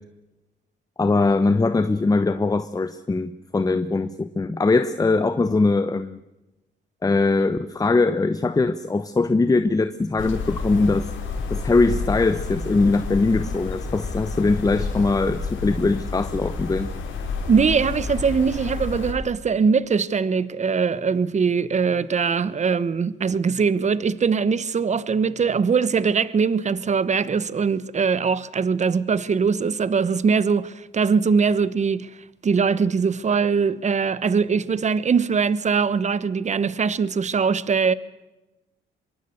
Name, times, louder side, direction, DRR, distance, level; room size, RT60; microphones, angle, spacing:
voice 1, 1.0-6.2 7.0-11.1 11.5-16.9, left 3 dB, 20° left, 0.9 m, -21 dB
sound 1, 10.2-19.1, left 4 dB, 75° left, 5.3 m, -30 dB
voice 2, 17.5-32.1 32.4-37.9, right 5 dB, 35° right, 1.1 m, -21 dB
24.5 x 23.0 x 6.6 m
cardioid pair, 90°, 20 cm